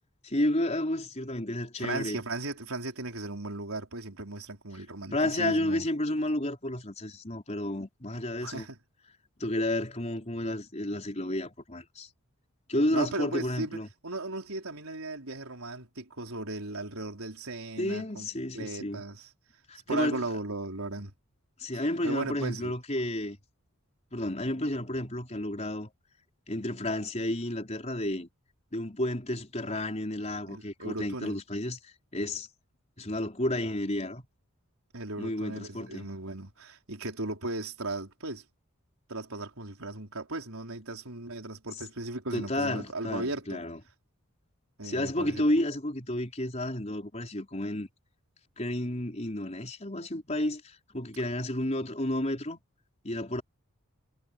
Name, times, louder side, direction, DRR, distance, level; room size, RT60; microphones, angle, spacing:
voice 1, 0.2-2.2 5.1-8.6 9.4-12.1 12.7-13.9 17.8-19.0 19.7-20.2 21.6-23.4 24.1-25.9 26.5-28.3 28.7-32.5 33.0-34.2 35.2-36.1 42.3-43.8 44.8-47.9 48.6-52.6 53.0-53.4, left 1 dB, 30° left, 4.6 m, -31 dB
voice 2, 1.8-5.8 8.4-8.8 12.9-18.3 18.5-19.3 19.9-21.1 21.7-22.7 30.5-31.4 34.9-38.4 39.1-43.6 44.8-45.5, right 2 dB, 75° right, 4.5 m, -37 dB
head